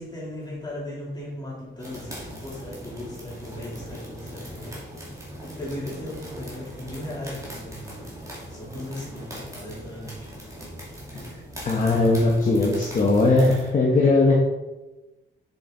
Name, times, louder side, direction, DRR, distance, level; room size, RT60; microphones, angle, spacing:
voice 1, 0.0-4.7 5.4-8.0 8.5-10.3, left 1 dB, 20° left, -6 dB, 3.1 m, -37 dB
sound 1, 1.8-13.7, equal, 15° right, 2.3 m, -40 dB
voice 2, 11.6-14.3, left 3 dB, 40° left, -3 dB, 1.2 m, -19 dB
7.2 x 7.1 x 3.9 m, 1.1 s
wide cardioid pair, 175°, 21 cm